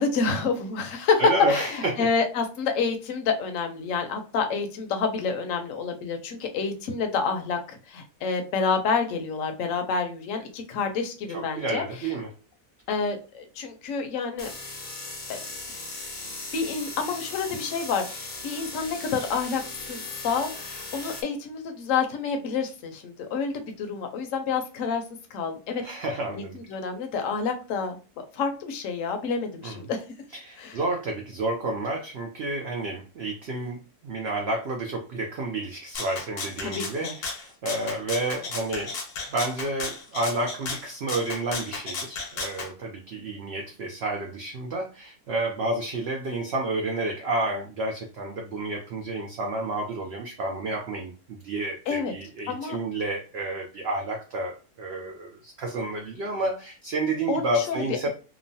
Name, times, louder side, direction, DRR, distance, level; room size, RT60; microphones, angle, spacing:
voice 1, 0.0-11.8 12.9-14.5 15.3-15.4 16.5-25.0 25.3-25.8 26.3-28.0 28.3-30.0 30.6-30.8 36.6-37.1 51.9-52.1 52.5-52.8 57.3-58.1, left 5 dB, 65° left, 5 dB, 0.9 m, -28 dB
voice 2, 1.2-2.1 11.3-12.3 25.8-26.6 29.6-29.8 30.3-39.0 39.3-58.1, right 2 dB, 70° right, 2 dB, 0.6 m, -30 dB
sound 1, 14.4-21.2, left 3 dB, 45° left, 0.6 m, -38 dB
Rattle (instrument), 35.9-42.7, left 4 dB, 80° left, 1.3 m, -34 dB
3.0 x 2.0 x 2.6 m, 0.34 s
omnidirectional pair, 1.6 m